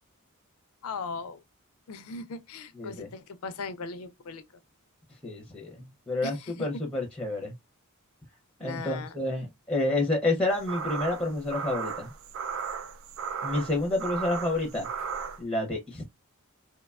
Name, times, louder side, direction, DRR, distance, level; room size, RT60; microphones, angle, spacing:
voice 1, 0.8-1.4 1.9-4.4 6.2-6.7 8.6-9.2, left 4 dB, 80° left, 0.4 m, -38 dB
voice 2, 2.8-3.1 5.2-7.5 8.6-12.1 13.4-14.9 15.4-16.2, left 2 dB, 5° left, 0.5 m, -29 dB
sound 1, 10.5-15.4, right 6 dB, 60° right, 0.3 m, -35 dB
2.9 x 2.1 x 2.3 m
head